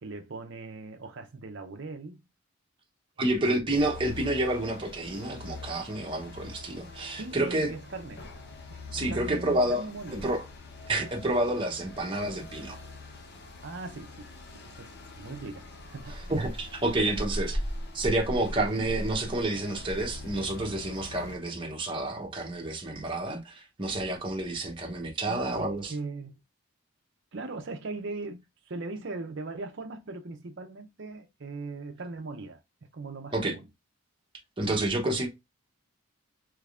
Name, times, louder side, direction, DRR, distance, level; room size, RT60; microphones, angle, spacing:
voice 1, 0.0-2.2 3.2-3.7 7.1-8.2 8.7-10.3 13.6-16.2 25.3-26.3 27.3-32.6 32.9-33.7, right 3 dB, 55° right, 0.6 m, -40 dB
voice 2, 3.2-7.7 8.9-9.8 10.1-10.4 10.9-12.8 16.1-17.6 17.9-25.9 33.3-33.5 34.6-35.3, right 1 dB, 25° right, 0.8 m, -29 dB
sound 1, 3.7-21.4, left 1 dB, 50° left, 0.7 m, -41 dB
3.4 x 3.2 x 2.4 m
head